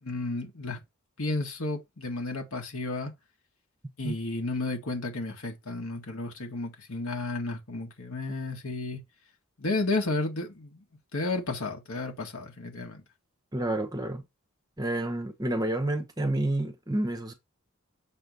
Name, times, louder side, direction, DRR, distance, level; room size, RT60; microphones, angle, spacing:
voice 1, 0.0-0.8 1.2-3.1 4.0-9.0 9.6-10.8 11.1-13.0, left 2 dB, 75° left, 1.9 m, -32 dB
voice 2, 13.5-14.2 14.8-17.3, right 1 dB, 15° right, 0.9 m, -29 dB
6.7 x 3.1 x 5.3 m
head